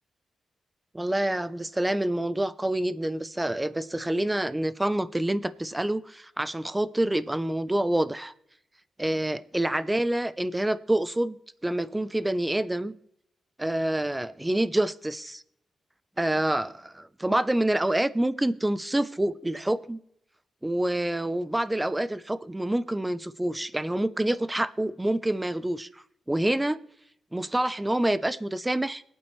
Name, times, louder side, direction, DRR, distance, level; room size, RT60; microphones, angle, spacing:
voice 1, 0.9-8.3 9.0-11.4 11.6-12.9 13.6-15.4 16.2-20.0 20.6-26.8 27.3-29.0, right 1 dB, 10° right, 14 dB, 0.7 m, -27 dB
24.0 x 8.9 x 3.3 m, 0.75 s
cardioid pair, 90°, 0 cm